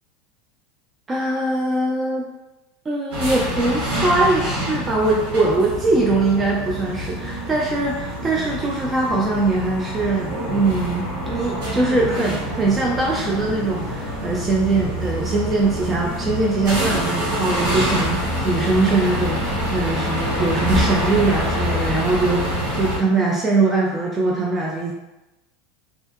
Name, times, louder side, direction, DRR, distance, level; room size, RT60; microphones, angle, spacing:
voice 1, 1.1-2.3 2.9-24.9, right 3 dB, 25° right, -2 dB, 0.4 m, -22 dB
sound 1, 3.1-23.0, equal, 70° right, 1.1 m, -26 dB
2.7 x 2.2 x 2.4 m, 1.0 s
figure-of-eight pair, 80°, 0 cm